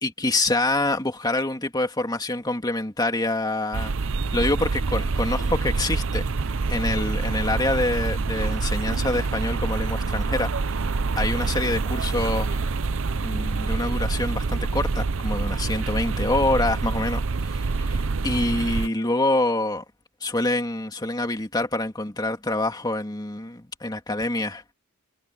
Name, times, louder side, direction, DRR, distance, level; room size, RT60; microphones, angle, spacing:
voice 1, 0.0-3.9 4.3-6.2 6.7-10.5 11.2-12.6 13.2-19.8 20.2-24.7, left 2 dB, 20° left, 2.4 m, -26 dB
sound 1, 3.7-18.9, right 4 dB, 60° right, 0.7 m, -26 dB
head